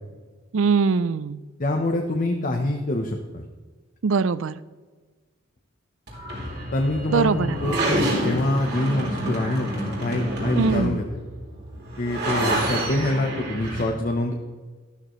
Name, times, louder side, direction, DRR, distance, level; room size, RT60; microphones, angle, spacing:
voice 1, 0.5-1.4 4.0-4.6 7.1-7.7 10.5-11.0, right 5 dB, 65° right, 17 dB, 0.4 m, -22 dB
voice 2, 1.6-3.4 6.7-11.0 12.0-14.3, left 1 dB, 40° left, 3 dB, 0.8 m, -25 dB
sound 1, 6.1-13.8, right 1 dB, 50° right, 3.4 m, -28 dB
12.5 x 12.5 x 3.1 m, 1.4 s
head